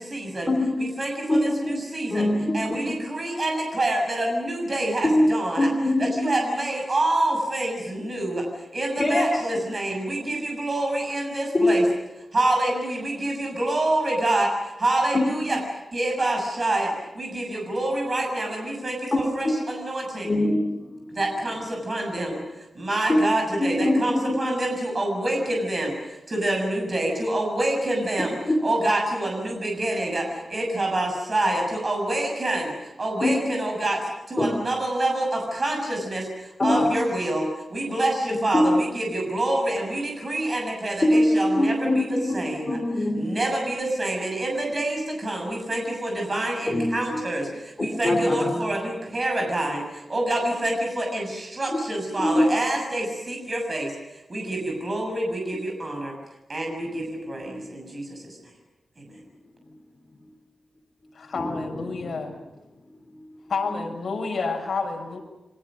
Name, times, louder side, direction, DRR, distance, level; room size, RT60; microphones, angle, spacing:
voice 1, 0.0-0.5 0.8-2.3 2.5-5.7 6.0-11.8 12.3-14.5 14.8-15.6 15.9-20.3 21.1-22.4 22.7-28.3 28.6-34.0 34.3-42.8 43.1-56.1 56.5-58.4 59.0-59.1, right 1 dB, 30° right, 1 dB, 7.0 m, -27 dB
voice 2, 1.3-1.7 2.1-2.9 5.0-5.3 5.6-6.1 9.0-9.4 11.5-11.7 15.1-15.5 19.1-19.2 20.2-21.2 23.1-23.2 23.6-24.4 28.5-28.6 33.2-33.4 34.4-34.5 36.6-36.9 38.5-38.8 41.0-42.4 42.7-43.3 46.7-47.2 47.8-48.5 52.2-52.4 61.3-62.2 63.1-63.2, left 1 dB, 25° left, 2 dB, 3.7 m, -23 dB
voice 3, 61.1-62.3 63.5-65.2, left 4 dB, 60° left, 2 dB, 6.5 m, -29 dB
29.0 x 24.5 x 6.4 m, 0.98 s
wide cardioid pair, 180°, 0 cm